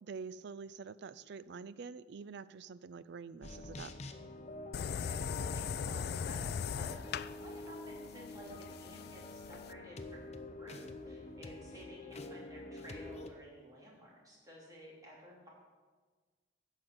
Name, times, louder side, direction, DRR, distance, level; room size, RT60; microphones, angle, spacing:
voice 1, 0.0-3.9, right 5 dB, 60° right, 17 dB, 0.4 m, -46 dB
sound 1, 3.4-13.3, left 2 dB, 35° left, 0.7 m, -47 dB
sound 2, 4.7-9.7, left 7 dB, 55° left, 0.3 m, -39 dB
voice 2, 4.9-15.5, equal, 20° right, -4 dB, 3.1 m, -53 dB
11.5 x 5.7 x 7.9 m, 1.4 s
head